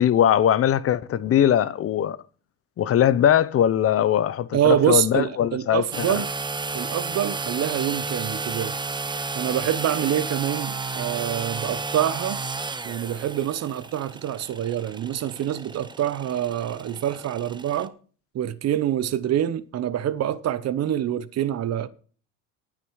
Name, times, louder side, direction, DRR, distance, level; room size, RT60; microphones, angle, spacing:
voice 1, 0.0-2.2 2.8-6.2, left 10 dB, 40° left, 0.8 m, -21 dB
voice 2, 4.5-6.3 6.7-8.7 9.3-12.4 12.8-17.9 18.3-21.9, right 11 dB, 45° right, 0.9 m, -26 dB
sound 1, 5.9-17.9, right 3 dB, 10° right, 0.8 m, -32 dB
19.0 x 6.4 x 4.8 m
cardioid pair, 130°, 36 cm